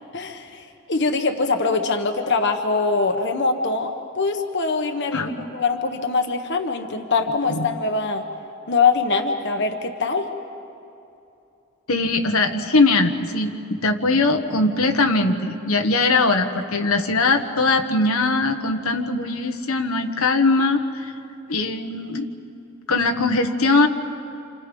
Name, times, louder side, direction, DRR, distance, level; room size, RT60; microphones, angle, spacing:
voice 1, 0.1-8.2 8.7-10.3, left 4 dB, 55° left, 5 dB, 1.3 m, -23 dB
voice 2, 5.1-5.5 7.5-7.7 11.9-21.1 21.5-22.3 22.9-23.9, left 3 dB, 85° left, 5 dB, 1.5 m, -21 dB
28.5 x 28.0 x 5.4 m, 2.7 s
head